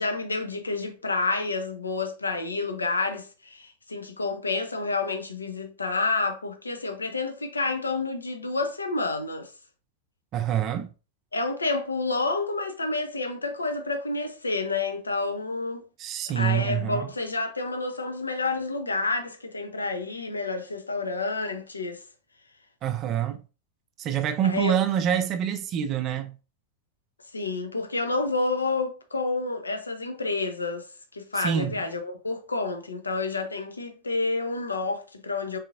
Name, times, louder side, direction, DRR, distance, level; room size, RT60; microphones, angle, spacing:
voice 1, 0.0-9.5 11.3-15.8 16.3-22.0 24.4-24.7 27.3-35.6, left 3 dB, 80° left, 0.7 m, -29 dB
voice 2, 10.3-10.9 16.0-17.1 22.8-23.4 24.0-26.3 31.4-31.7, right 9 dB, 35° right, 0.4 m, -26 dB
4.2 x 3.7 x 2.4 m
figure-of-eight pair, 90°, 0 cm